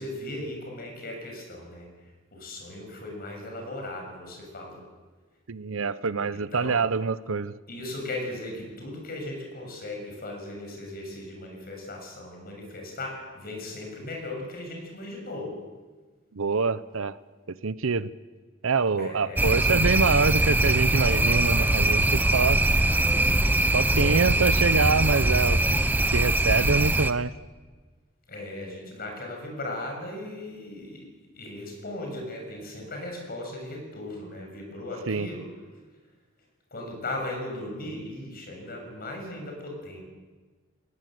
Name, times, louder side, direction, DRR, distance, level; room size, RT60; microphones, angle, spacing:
voice 1, 0.0-1.9 2.3-4.8 6.3-6.8 7.7-15.6 19.0-19.4 28.3-35.5 36.7-40.0, left 1 dB, 50° left, 2 dB, 6.7 m, -37 dB
voice 2, 5.5-7.5 16.3-17.2 17.5-18.1 18.6-22.6 23.7-25.8 26.1-27.3 35.1-35.3, right 4 dB, 90° right, 16 dB, 0.7 m, -25 dB
sound 1, 19.4-27.1, right 1 dB, 10° right, 0.7 m, -22 dB
20.0 x 19.5 x 7.7 m, 1.4 s
head